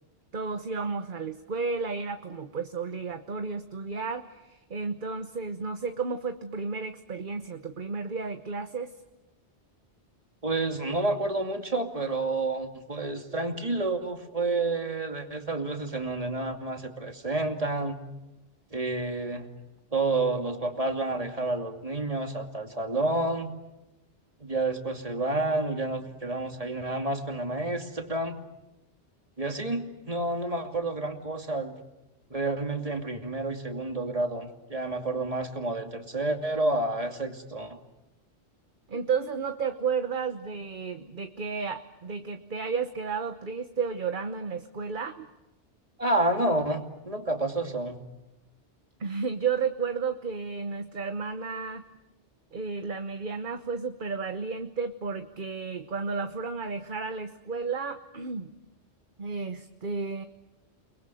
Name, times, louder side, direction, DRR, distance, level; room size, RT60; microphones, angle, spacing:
voice 1, 0.3-9.0 38.9-45.3 49.0-51.8 52.5-58.5 59.2-60.2, right 5 dB, 50° right, 8 dB, 1.2 m, -32 dB
voice 2, 10.4-18.0 18.7-19.5 19.9-23.5 24.4-28.4 29.4-31.8 32.3-37.8 46.0-48.0, right 2 dB, 30° right, 4 dB, 2.6 m, -29 dB
30.0 x 21.0 x 9.2 m, 0.98 s
omnidirectional pair, 1.2 m